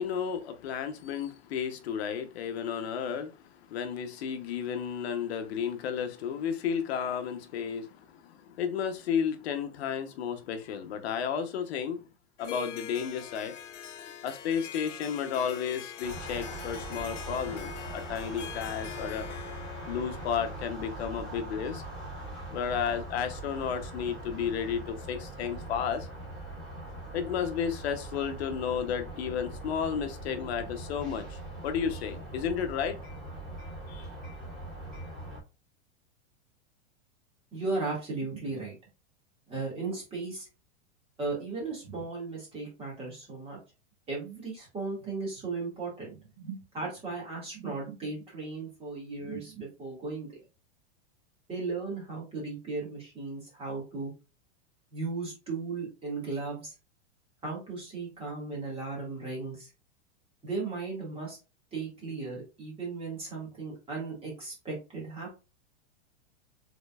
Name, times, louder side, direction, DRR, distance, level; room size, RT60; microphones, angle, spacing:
voice 1, 0.0-3.4 3.7-12.1 12.4-13.5 14.2-19.3 19.9-21.8 22.5-26.1 27.1-33.0 33.9-34.1, left 7 dB, 60° left, 1.0 m, -32 dB
Harp, 12.4-21.1, left 9 dB, 80° left, 1.1 m, -44 dB
sound 1, 16.0-35.4, right 1 dB, ahead, 2.4 m, -41 dB
voice 2, 37.5-38.7 39.5-40.5 41.2-43.6 44.1-50.3 51.5-54.1 54.9-56.7 57.4-59.7 60.4-61.4 61.7-65.4, right 3 dB, 15° right, 2.1 m, -36 dB
5.1 x 3.9 x 2.4 m
supercardioid pair, 160°, 36 cm